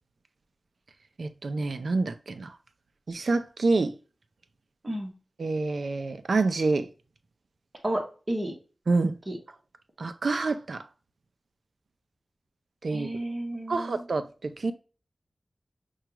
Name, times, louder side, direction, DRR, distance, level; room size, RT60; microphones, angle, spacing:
voice 1, 1.2-2.6 3.1-3.9 5.4-6.9 8.9-9.2 10.0-10.8 12.8-13.1 13.7-14.7, right 3 dB, 75° right, 0.5 m, -27 dB
voice 2, 7.8-8.5 9.3-9.4 12.9-14.0, right 1 dB, 30° right, 1.4 m, -32 dB
5.7 x 2.4 x 2.9 m
wide cardioid pair, 80°, 0 cm